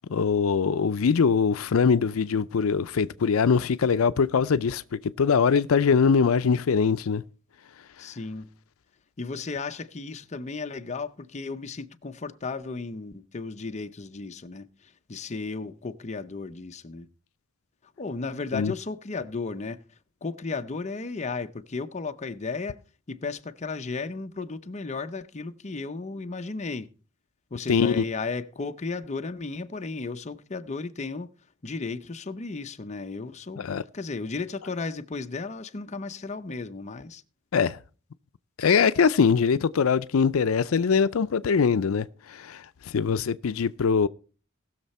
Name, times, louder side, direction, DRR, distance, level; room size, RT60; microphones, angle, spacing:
voice 1, 0.1-7.2 18.5-18.7 27.7-28.0 33.6-33.8 37.5-37.8 38.6-44.1, left 6 dB, 85° left, 0.5 m, -22 dB
voice 2, 8.0-8.5 9.2-17.1 18.0-19.8 20.2-22.8 23.1-26.9 27.5-31.3 31.6-33.7 33.9-37.2, left 4 dB, 35° left, 0.7 m, -34 dB
19.0 x 6.6 x 4.2 m
head